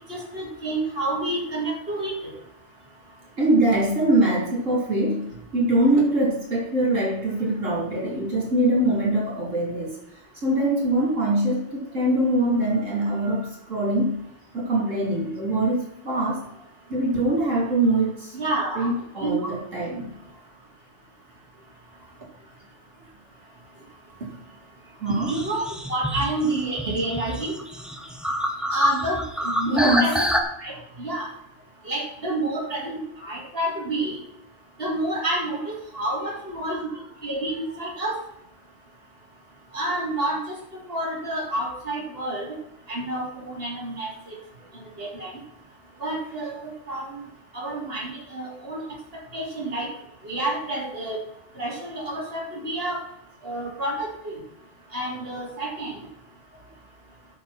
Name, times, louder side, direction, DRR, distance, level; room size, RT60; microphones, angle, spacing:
voice 1, 0.1-2.2 18.3-18.9 19.2-19.5 25.3-25.6 25.9-27.5 28.7-30.3 30.6-31.3 31.8-34.2 34.8-36.9 37.2-38.2 39.7-40.4 40.9-42.6 42.9-44.3 45.0-45.3 46.0-47.1 47.5-48.8 49.3-49.9 50.2-51.2 51.6-53.0 53.4-54.4 54.9-55.9, right 1 dB, 50° right, -4 dB, 3.6 m, -29 dB
voice 2, 3.4-10.0 10.4-14.2 14.5-16.4 16.9-18.4 18.8-20.1 25.0-25.3 29.7-30.1 36.7-36.8, right 1 dB, 80° right, -4 dB, 4.1 m, -23 dB
sound 1, 25.1-30.4, equal, ahead, 1.3 m, -27 dB
15.5 x 6.7 x 4.4 m, 0.79 s
omnidirectional pair, 1.3 m